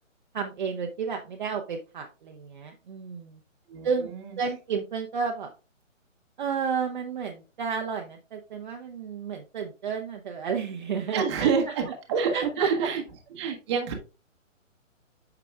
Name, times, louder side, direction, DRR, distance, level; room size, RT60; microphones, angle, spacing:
voice 1, 0.3-3.4 3.8-5.5 6.4-11.5 12.3-12.9, right 6 dB, 40° right, 2 dB, 0.7 m, -31 dB
voice 2, 3.7-4.4 11.1-13.0 13.3-13.9, right 6 dB, 20° right, 4 dB, 1.0 m, -28 dB
8.3 x 5.8 x 2.3 m, 0.32 s
hypercardioid pair, 150°, 39 cm